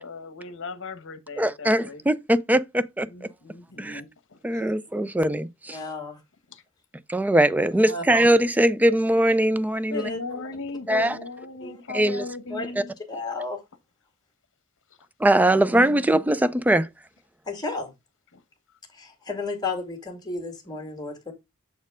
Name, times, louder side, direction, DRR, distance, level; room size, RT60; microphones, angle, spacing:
voice 1, 0.0-2.0 3.1-4.4 6.5-6.6 9.9-12.9 15.3-16.1 18.3-18.4, left 4 dB, 60° left, 1.0 m, -37 dB
voice 2, 1.4-3.3 3.8-4.0 4.4-5.8 7.1-10.1 10.9-11.1 11.9-12.3 15.2-16.9, right 1 dB, 5° right, 0.4 m, -21 dB
voice 3, 5.7-6.2 7.7-8.0 9.9-10.4 11.6-11.8 12.5-12.7 13.1-13.6 17.5-17.9 18.9-21.3, left 3 dB, 20° left, 2.0 m, -33 dB
7.1 x 4.3 x 3.6 m
head